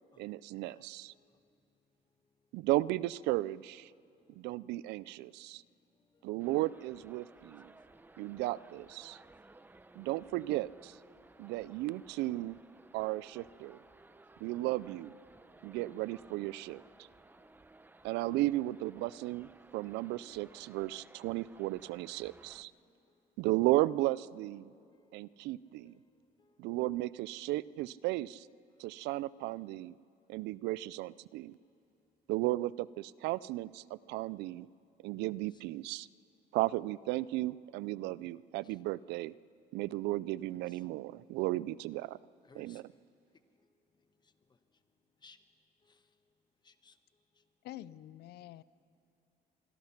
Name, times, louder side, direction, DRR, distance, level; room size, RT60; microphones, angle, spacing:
voice 1, 0.2-1.1 2.5-3.9 4.4-5.6 6.2-7.7 8.2-9.2 10.0-11.0 11.4-12.6 12.9-13.8 14.4-15.2 15.6-16.8 18.0-22.7 23.4-24.7 25.1-26.0 26.6-28.5 28.8-30.0 30.3-31.5 32.3-34.7 35.0-36.1 36.5-39.3 39.7-42.2 42.5-42.8, right 17 dB, 90° right, 21 dB, 0.4 m, -35 dB
voice 2, 0.7-1.4 5.3-5.4 6.0-6.3 7.7-8.2 11.3-11.5 13.6-13.7 22.2-22.4 23.1-23.2 24.7-25.2 25.7-26.7 30.2-30.4 38.6-38.8 40.7-40.8 42.5-43.0 44.2-44.6 45.2-45.4 45.8-46.1 46.6-47.0 47.3-47.4, left 4 dB, 25° left, 10 dB, 1.2 m, -65 dB
sound 1, 6.4-22.6, right 2 dB, 10° right, 0.8 m, -58 dB
voice 3, 47.6-48.6, left 13 dB, 75° left, 18 dB, 0.6 m, -47 dB
25.0 x 23.5 x 5.9 m, 2.5 s
cardioid pair, 110°, 17 cm